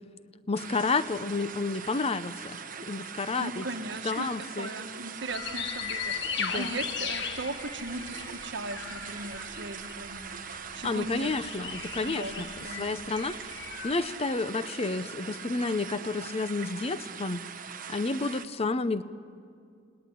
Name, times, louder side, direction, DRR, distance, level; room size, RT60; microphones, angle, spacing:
voice 1, 0.5-2.3 2.9-3.7 4.0-4.7 6.4-6.7 10.8-12.5 12.8-13.3 13.8-17.4 17.9-19.0, left 3 dB, 30° left, 14 dB, 0.7 m, -30 dB
sound 1, 0.5-18.4, right 7 dB, 45° right, 1.1 m, -42 dB
voice 2, 3.4-10.4 10.7-11.5 12.0-13.0, right 2 dB, 65° right, 7 dB, 1.5 m, -38 dB
sound 2, 5.3-13.9, left 7 dB, 65° left, 1.4 m, -38 dB
29.5 x 18.0 x 9.9 m, 2.4 s
head